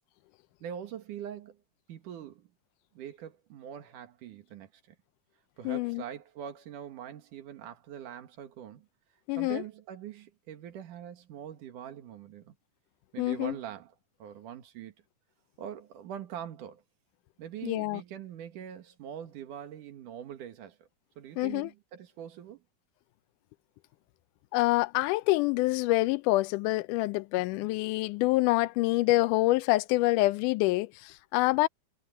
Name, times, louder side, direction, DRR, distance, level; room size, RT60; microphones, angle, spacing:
voice 1, 0.6-1.6 1.9-2.5 2.9-4.7 5.6-8.9 9.4-12.6 13.1-13.9 14.2-14.9 15.6-16.8 17.4-20.9 21.2-22.6 27.4-27.7, right 9 dB, 80° right, 3.1 m, -43 dB
voice 2, 5.7-6.0 9.3-9.6 13.2-13.6 17.6-18.0 21.4-21.7 24.5-31.7, left 19 dB, 85° left, 2.1 m, -26 dB
omnidirectional pair, 3.6 m